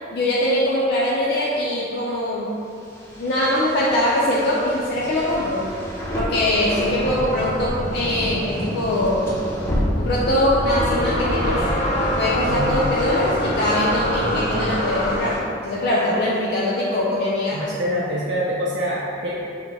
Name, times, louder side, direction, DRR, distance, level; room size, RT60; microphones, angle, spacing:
voice 1, 0.1-2.5 3.2-5.7 6.1-9.4 9.9-11.6 12.2-17.6, left 1 dB, 60° left, -6 dB, 0.5 m, -22 dB
sound 1, 2.8-15.4, equal, 15° left, 0.6 m, -29 dB
sound 2, 10.5-15.4, left 1 dB, 35° left, 0.9 m, -25 dB
voice 2, 12.5-12.8 17.5-19.4, equal, 70° right, -6 dB, 0.5 m, -25 dB
5.9 x 2.1 x 3.4 m, 2.7 s
head